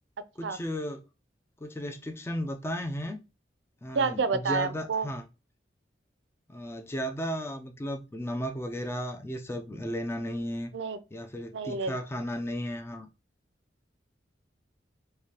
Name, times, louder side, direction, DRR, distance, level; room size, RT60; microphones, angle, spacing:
voice 1, 0.4-1.0 1.6-3.2 3.8-5.2 6.5-10.7 11.1-13.1, equal, 15° left, 0.4 m, -34 dB
voice 2, 3.9-5.1 10.7-11.0 11.5-12.0, right 4 dB, 85° right, 0.5 m, -29 dB
4.8 x 2.2 x 2.8 m
head